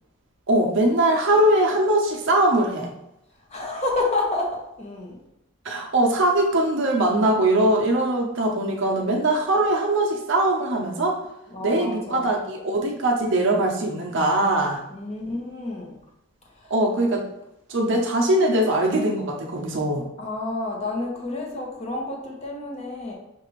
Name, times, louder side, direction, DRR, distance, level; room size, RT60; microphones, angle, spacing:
voice 1, 0.5-2.9 5.6-11.2 11.6-14.8 16.7-17.3 17.7-20.0, right 1 dB, 60° right, 0 dB, 0.7 m, -21 dB
voice 2, 3.5-5.2 11.5-12.3 14.9-16.0 16.5-16.7 20.2-23.1, left 2 dB, 30° left, -1 dB, 0.8 m, -29 dB
6.1 x 2.4 x 3.1 m, 0.85 s
head